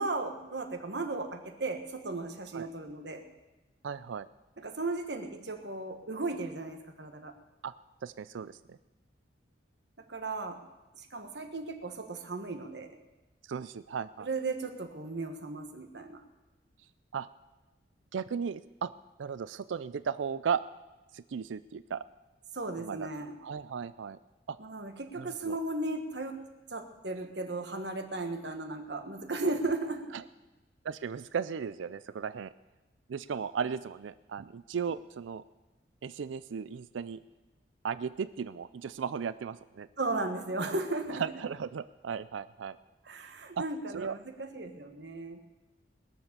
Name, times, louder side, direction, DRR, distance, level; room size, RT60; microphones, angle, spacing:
voice 1, 0.0-3.2 4.6-7.3 10.0-10.6 10.9-13.0 14.2-16.2 22.5-23.3 24.6-26.4 26.7-30.2 40.0-41.2 43.0-45.4, right 2 dB, 65° right, 6 dB, 1.5 m, -36 dB
voice 2, 3.8-4.3 7.6-7.7 8.0-8.8 13.4-14.3 17.1-17.3 18.1-18.9 19.2-20.6 21.1-22.0 22.8-23.1 23.4-24.2 24.5-24.6 25.2-25.6 30.1-30.2 30.8-32.5 33.1-35.4 36.0-37.2 37.8-39.9 41.1-42.8 43.2-43.3 43.9-44.2, right 6 dB, 90° right, 15 dB, 0.4 m, -36 dB
21.0 x 7.2 x 6.8 m, 1.1 s
head